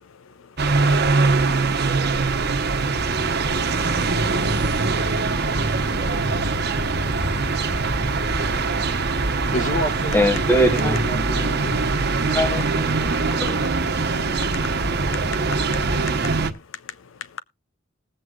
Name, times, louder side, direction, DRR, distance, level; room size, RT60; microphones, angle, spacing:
voice 1, 0.0-7.3 7.8-9.4 12.2-12.4 13.1-14.7 15.0-17.4, left 7 dB, 90° left, 0.5 m, -44 dB
sound 1, 0.6-16.5, right 3 dB, 55° right, 1.1 m, -22 dB
voice 2, 9.5-11.9, equal, 40° left, 1.8 m, -30 dB
voice 3, 10.1-10.9 12.3-13.1 13.4-13.6, equal, 10° left, 0.8 m, -21 dB
20.0 x 8.0 x 2.4 m
head